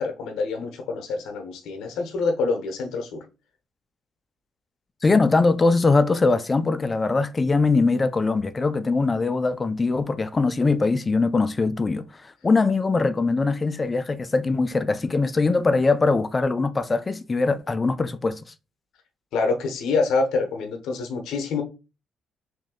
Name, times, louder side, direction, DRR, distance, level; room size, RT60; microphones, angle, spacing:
voice 1, 0.0-3.2 19.3-21.6, left 4 dB, 85° left, 0.7 m, -26 dB
voice 2, 5.0-18.4, left 3 dB, 30° left, 0.4 m, -22 dB
3.1 x 2.6 x 3.6 m
cardioid pair, 90°, 0 cm